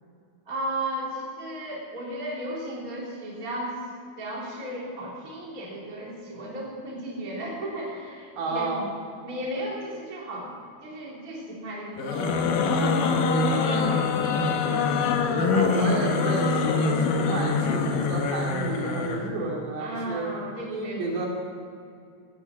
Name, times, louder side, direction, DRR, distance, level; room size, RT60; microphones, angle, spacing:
voice 1, 0.5-3.8 4.2-8.8 9.2-10.5 10.8-15.0 15.3-16.1 17.5-17.7 19.8-21.2, right 1 dB, 20° right, -4 dB, 3.3 m, -35 dB
voice 2, 8.4-8.9 15.5-20.2 20.7-21.3, right 3 dB, 65° right, -2 dB, 4.7 m, -31 dB
sound 1, 12.0-19.3, left 4 dB, 70° left, 2.1 m, -24 dB
17.0 x 11.5 x 7.3 m, 2.4 s
omnidirectional pair, 5.4 m